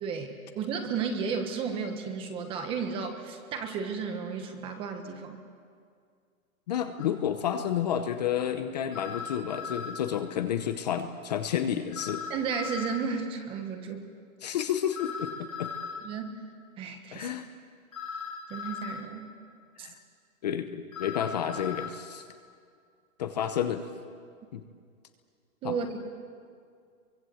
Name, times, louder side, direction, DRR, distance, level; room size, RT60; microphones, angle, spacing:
voice 1, 0.0-5.4 12.3-14.1 16.0-16.4 16.8-17.3 18.5-19.3 19.8-19.9 25.6-26.0, right 6 dB, 10° right, 5 dB, 1.3 m, -33 dB
voice 2, 6.7-12.2 14.4-15.3 15.6-15.7 17.1-17.5 19.8-19.9 20.4-22.3 23.2-23.8 24.5-24.6 25.6-25.8, left 9 dB, 30° left, 8 dB, 0.9 m, -30 dB
sound 1, 7.0-7.1 8.9-10.1 11.9-13.1 14.9-16.1 17.9-19.1 20.9-21.9, left 6 dB, 70° left, 4.3 m, -38 dB
30.0 x 24.0 x 7.9 m, 2.2 s
hypercardioid pair, 175°, 42 cm